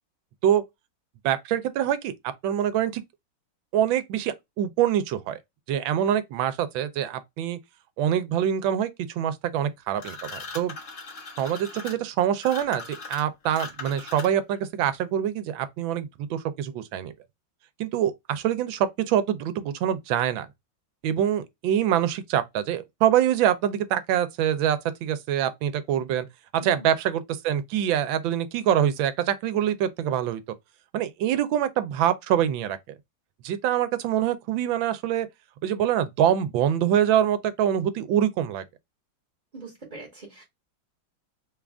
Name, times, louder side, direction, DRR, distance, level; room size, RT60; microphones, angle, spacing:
voice 1, 1.2-2.1 2.4-3.0 3.7-5.4 5.7-7.6 8.0-10.7 11.4-17.1 17.8-20.5 21.0-26.3 26.5-30.4 30.9-32.8 33.4-35.3 35.6-38.6, right 10 dB, 85° right, 1.4 m, -25 dB
sound 1, 10.0-14.6, left 4 dB, 45° left, 1.3 m, -39 dB
voice 2, 26.6-26.9 39.5-40.4, right 2 dB, 30° right, 0.8 m, -43 dB
3.7 x 2.4 x 3.4 m
omnidirectional pair, 2.1 m